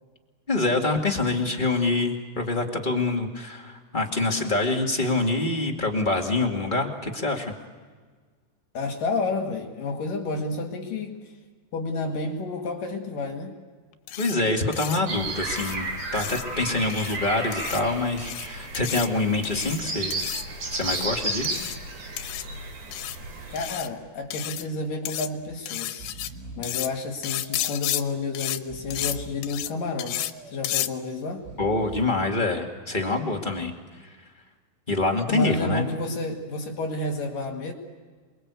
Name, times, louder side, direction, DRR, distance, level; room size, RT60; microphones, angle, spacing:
voice 1, 0.5-7.5 14.2-20.2 20.7-21.5 31.6-33.7 34.9-35.8, left 2 dB, 20° left, 1 dB, 1.2 m, -25 dB
voice 2, 8.7-11.2 11.7-13.6 23.5-26.1 26.6-31.4 35.3-37.7, left 3 dB, 55° left, 3 dB, 3.4 m, -30 dB
sound 1, 14.1-14.3 14.7-15.0 15.6-15.8 16.2-16.4 16.9-17.2 17.5-17.8 18.2-18.5 18.7-19.1 19.4-19.8 20.1-20.4 20.8-21.1 21.4-21.8 22.2-22.4 22.9-23.2 23.6-23.9 24.3-24.7 25.1-25.3 25.7-26.3 26.6-26.9 27.2-28.0 28.3-28.6 28.9-29.2 29.4-29.7 30.0-30.3 30.6-30.9, left 13 dB, 80° left, 3.1 m, -32 dB
sound 2, 15.1-23.7, right 2 dB, 45° right, 4.2 m, -33 dB
Breathing, 23.7-24.1 24.4-24.5 25.4-25.6 25.8-26.9 27.4-28.1 28.5-29.6 30.1-30.8 31.3-32.3 32.9-33.5, right 3 dB, 75° right, 5.9 m, -44 dB
28.0 x 22.5 x 8.3 m, 1.5 s
omnidirectional pair, 4.9 m